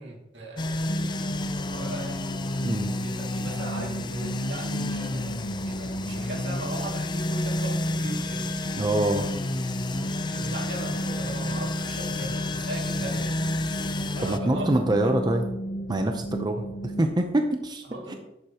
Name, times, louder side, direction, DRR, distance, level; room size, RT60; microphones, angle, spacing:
voice 1, 0.0-2.3 2.9-8.5 10.3-13.4 14.2-14.8 17.9-18.2, right 2 dB, 75° right, 0 dB, 2.2 m, -38 dB
sound 1, 0.6-14.4, left 2 dB, 25° left, 0.5 m, -31 dB
sound 2, 0.9-17.1, equal, 60° left, 1.3 m, -34 dB
voice 2, 8.8-9.3 14.2-15.5 15.9-17.8 18.1-18.2, right 1 dB, 25° right, 5 dB, 0.6 m, -25 dB
11.0 x 8.0 x 2.9 m, 0.86 s
head